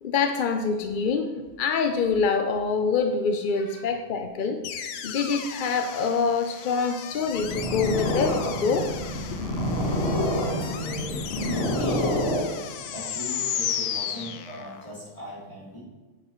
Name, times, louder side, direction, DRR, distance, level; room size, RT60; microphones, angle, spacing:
voice 1, 0.0-1.3 1.6-4.6 5.0-8.9, left 5 dB, 65° left, 6 dB, 0.5 m, -25 dB
voice 2, 3.5-3.9 9.3-15.8, equal, 25° left, -7 dB, 3.4 m, -39 dB
sound 1, 4.6-14.9, left 9 dB, 85° left, 1.2 m, -35 dB
Purr, 7.2-12.9, left 1 dB, 45° left, 1.9 m, -27 dB
9.6 x 9.2 x 3.1 m, 1.2 s
omnidirectional pair, 1.6 m